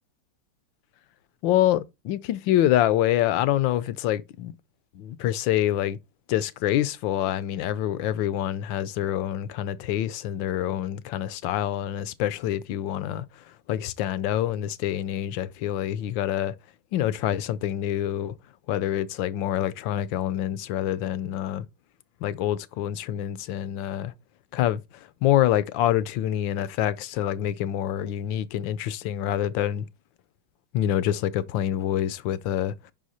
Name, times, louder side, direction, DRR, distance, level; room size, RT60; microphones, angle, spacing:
voice 1, 1.4-4.5 4.9-6.0 6.3-13.2 13.7-16.6 16.9-18.3 18.7-21.7 22.2-24.1 24.5-29.9 30.7-32.9, left 12 dB, 70° left, 1.2 m, -26 dB
6.4 x 5.6 x 4.2 m
omnidirectional pair, 2.4 m